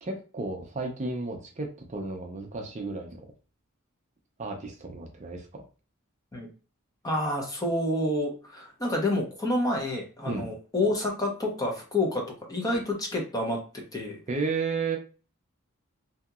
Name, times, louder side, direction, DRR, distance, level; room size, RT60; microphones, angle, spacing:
voice 1, 0.0-3.2 4.4-5.6 10.3-10.5 14.3-15.0, right 3 dB, 35° right, 2 dB, 0.5 m, -33 dB
voice 2, 7.0-13.6 13.9-14.2, left 1 dB, 15° left, 0 dB, 0.6 m, -28 dB
2.7 x 2.7 x 2.4 m, 0.36 s
head